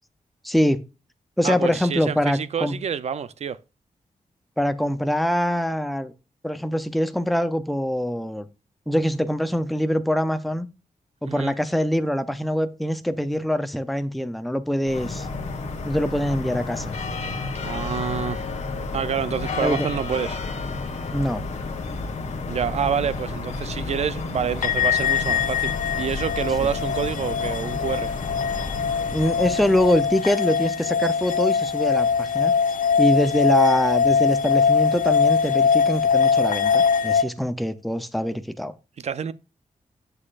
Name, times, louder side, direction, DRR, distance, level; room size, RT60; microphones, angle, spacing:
voice 1, 0.4-0.8 1.4-2.8 4.6-6.1 6.4-8.5 8.9-10.7 11.2-15.3 15.8-16.9 19.6-19.9 21.1-21.4 26.6-26.7 29.1-32.5 33.0-38.7, equal, ahead, 0.5 m, -24 dB
voice 2, 1.4-3.6 11.3-11.5 17.6-18.4 18.9-20.4 22.5-28.1 39.0-39.3, right 7 dB, 55° right, 0.5 m, -27 dB
sound 1, 14.8-30.3, left 3 dB, 55° left, 1.5 m, -31 dB
sound 2, 24.6-37.2, left 6 dB, 75° left, 0.6 m, -22 dB
9.8 x 6.6 x 2.4 m
wide cardioid pair, 170°, 14 cm